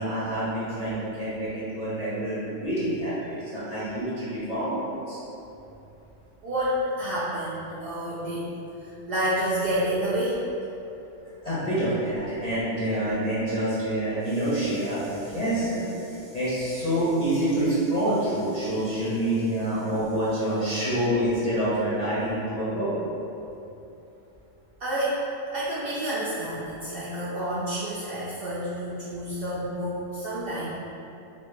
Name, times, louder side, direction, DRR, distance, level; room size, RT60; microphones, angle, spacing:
voice 1, 0.0-5.2 11.4-22.9, right 1 dB, 40° left, -12 dB, 0.7 m, -27 dB
voice 2, 6.4-8.5 8.8-10.4 24.8-25.2 25.5-30.7, right 1 dB, 60° right, -10 dB, 0.7 m, -29 dB
4.1 x 2.1 x 3.1 m, 2.8 s
omnidirectional pair, 1.4 m